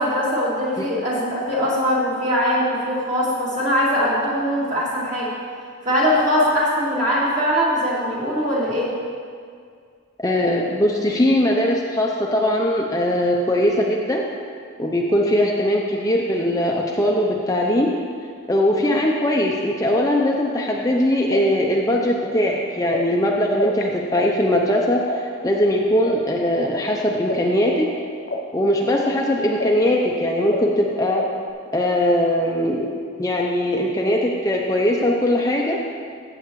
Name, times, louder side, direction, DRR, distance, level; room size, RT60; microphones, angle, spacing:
voice 1, 0.0-5.3 5.8-8.9 18.8-19.0 28.9-29.1, equal, 40° right, -7 dB, 2.6 m, -21 dB
voice 2, 10.2-14.2 14.8-17.9 18.5-27.9 28.5-31.2 31.7-32.9 33.2-35.8, left 1 dB, 15° left, -1 dB, 0.6 m, -20 dB
sound 1, 21.3-23.8 24.1-27.3 27.6-31.5, left 3 dB, 50° left, 0.9 m, -31 dB
15.0 x 7.7 x 3.1 m, 2.1 s
head